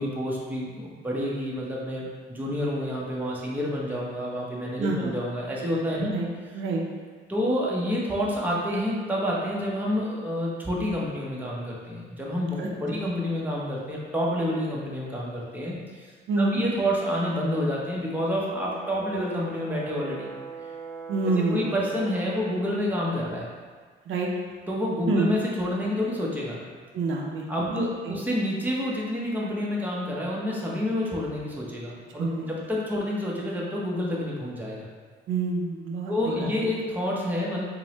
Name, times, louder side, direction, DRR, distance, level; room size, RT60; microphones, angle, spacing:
voice 1, 0.0-6.1 7.3-16.1 16.4-20.3 21.3-23.5 24.7-26.6 27.5-34.9 36.1-37.6, equal, 10° right, -4 dB, 0.7 m, -28 dB
voice 2, 4.8-5.1 6.0-6.3 6.5-6.8 12.6-12.7 16.3-16.6 21.1-21.7 24.1-24.3 25.1-25.3 26.9-28.2 32.2-32.5 35.3-36.5, right 3 dB, 80° right, -1 dB, 0.5 m, -27 dB
Brass instrument, 18.2-22.4, right 5 dB, 15° left, 1.0 m, -41 dB
4.3 x 2.1 x 3.0 m, 1.5 s
cardioid pair, 90°, 20 cm